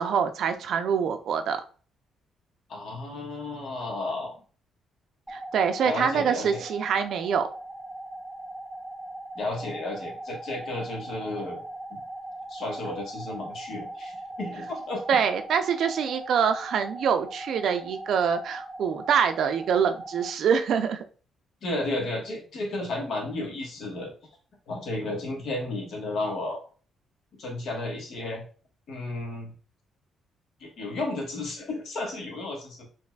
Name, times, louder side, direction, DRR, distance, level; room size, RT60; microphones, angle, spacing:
voice 1, 0.0-1.6 5.3-7.5 15.1-21.0, right 7 dB, 70° right, 8 dB, 0.4 m, -25 dB
voice 2, 2.7-4.3 5.8-6.6 9.3-11.6 11.9-12.0 12.5-15.0 21.6-24.1 24.7-26.6 27.4-28.4 28.9-29.5 30.6-32.9, left 2 dB, 70° left, 0 dB, 1.3 m, -33 dB
sound 1, 5.3-20.3, right 1 dB, 5° right, 0.4 m, -40 dB
4.0 x 3.0 x 2.3 m, 0.40 s
cardioid pair, 90°, 0 cm